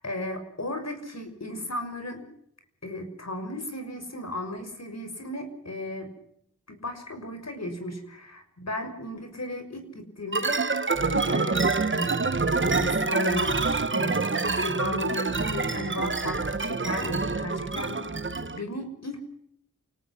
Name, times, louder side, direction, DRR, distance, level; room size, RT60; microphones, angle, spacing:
voice 1, 0.0-2.2 2.8-6.1 6.7-14.2 14.5-19.3, left 1 dB, 60° left, 7 dB, 6.1 m, -35 dB
sound 1, 10.3-18.6, right 3 dB, 40° right, 1.3 m, -26 dB
29.0 x 18.5 x 6.0 m, 0.71 s
wide cardioid pair, 50°, 30 cm